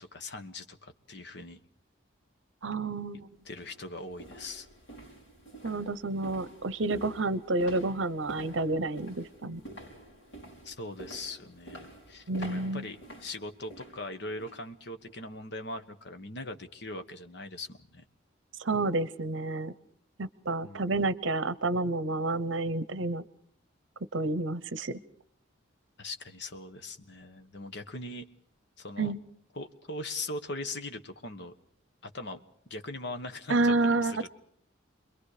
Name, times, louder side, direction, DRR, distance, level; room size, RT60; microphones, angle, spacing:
voice 1, 0.0-1.6 3.1-4.7 10.6-18.0 20.6-21.0 26.0-28.3 28.8-29.1 29.5-31.5 32.0-34.3, left 2 dB, 55° left, 8 dB, 1.3 m, -41 dB
voice 2, 2.6-3.3 5.6-9.6 12.3-12.8 18.6-19.7 20.2-23.2 24.1-25.0 29.0-29.2 33.5-34.3, right 2 dB, 70° right, 16 dB, 0.9 m, -29 dB
sound 1, 2.8-2.9 3.4-14.7 15.0-15.3 15.7-15.8, right 1 dB, 70° left, 5.6 m, -48 dB
29.0 x 22.5 x 5.0 m, 0.63 s
head